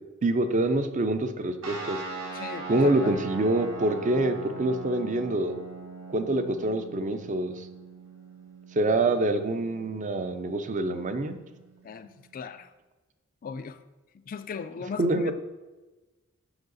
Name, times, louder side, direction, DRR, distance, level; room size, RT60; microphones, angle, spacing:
voice 1, 0.2-2.0 2.7-5.5 6.1-7.7 8.8-11.4 15.0-15.3, right 2 dB, 35° right, 9 dB, 0.5 m, -26 dB
sound 1, 1.6-12.5, right 3 dB, 70° right, 1.6 m, -41 dB
voice 2, 2.3-3.1 11.8-12.7 13.4-13.8 14.3-15.3, left 6 dB, 40° left, 10 dB, 0.3 m, -38 dB
8.0 x 5.6 x 3.9 m, 1.2 s
head